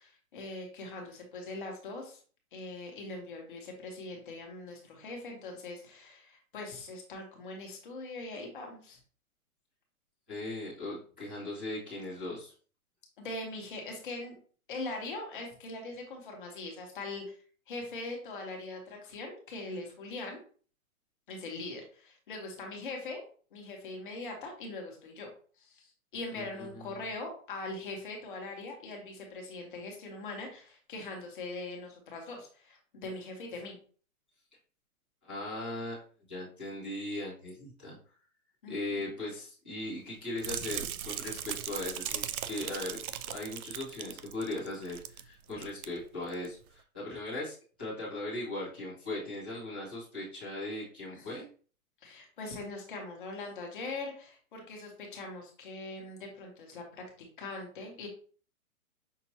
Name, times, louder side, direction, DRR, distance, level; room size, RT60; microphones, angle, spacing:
voice 1, 0.0-2.2 2.5-9.0 13.2-14.3 14.7-17.3 17.7-20.4 21.3-23.2 23.5-25.3 25.6-33.8 38.6-39.1 51.1-51.3 52.0-56.8 57.2-58.1, left 2 dB, 35° left, 1 dB, 1.3 m, -41 dB
voice 2, 10.3-12.5 26.3-26.4 26.7-26.9 35.2-36.0 36.3-38.0 38.7-43.0 43.3-51.4, left 2 dB, 10° left, -18 dB, 0.5 m, -38 dB
sound 1, 40.4-45.2 45.5-45.9 46.3-46.5, right 9 dB, 75° right, 0.6 m, -38 dB
5.9 x 2.6 x 2.8 m, 0.42 s
hypercardioid pair, 170°, 43 cm